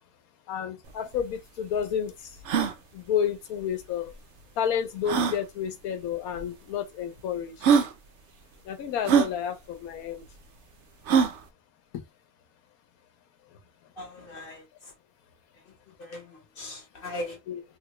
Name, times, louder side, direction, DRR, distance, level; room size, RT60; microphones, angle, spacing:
voice 1, 0.5-2.4 2.9-4.1 4.6-7.8 8.6-10.3 11.9-12.0 13.5-13.6 17.5-17.6, left 8 dB, 80° left, 1.1 m, -31 dB
sound 1, 0.9-1.0 1.1-1.2 1.8-1.9 2.4-2.7 4.1-4.2 5.0-5.4 6.4-6.5 7.2-7.3 7.6-7.9 9.0-9.3 11.1-11.4, right 7 dB, 65° right, 0.8 m, -22 dB
voice 2, 14.0-14.6 16.0-17.4, left 1 dB, 45° left, 1.0 m, -39 dB
3.3 x 2.1 x 2.9 m
omnidirectional pair, 1.5 m